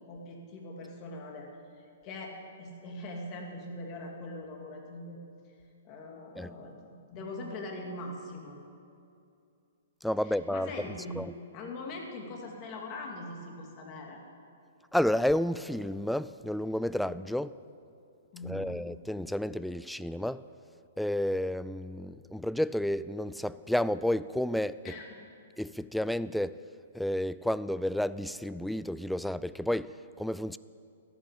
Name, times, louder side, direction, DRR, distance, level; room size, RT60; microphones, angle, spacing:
voice 1, 0.1-1.5 2.0-5.2 5.8-8.6 10.2-11.2 11.5-14.2 18.3-18.8 24.8-25.1, left 2 dB, 35° left, 2.8 m, -42 dB
voice 2, 10.0-10.9 11.2-11.3 14.9-17.6 18.4-20.4 21.0-24.9 25.6-26.6 26.9-30.6, left 1 dB, ahead, 0.3 m, -31 dB
14.5 x 11.0 x 8.4 m
hypercardioid pair, 140°, 0 cm